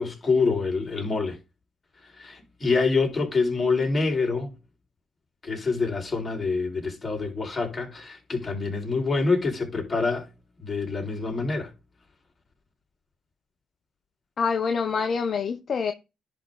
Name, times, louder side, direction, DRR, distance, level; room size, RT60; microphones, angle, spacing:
voice 1, 0.0-1.4 2.0-4.5 5.4-10.3 10.6-11.7, left 4 dB, 30° left, 4.7 m, -26 dB
voice 2, 14.4-15.9, left 5 dB, 50° left, 1.1 m, -26 dB
10.5 x 4.1 x 5.0 m
cardioid pair, 90°, 0 cm